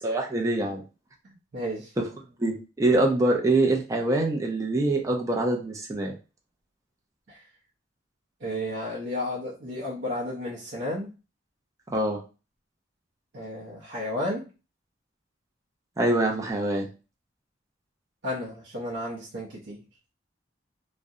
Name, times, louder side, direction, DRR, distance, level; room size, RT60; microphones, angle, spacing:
voice 1, 0.0-0.8 2.0-2.1 2.4-6.1 11.9-12.2 16.0-16.9, right 2 dB, 15° right, 0 dB, 0.4 m, -24 dB
voice 2, 1.5-1.9 7.3-7.4 8.4-11.1 13.3-14.5 18.2-19.8, left 1 dB, 65° right, -6 dB, 0.6 m, -32 dB
2.4 x 2.1 x 2.6 m, 0.32 s
head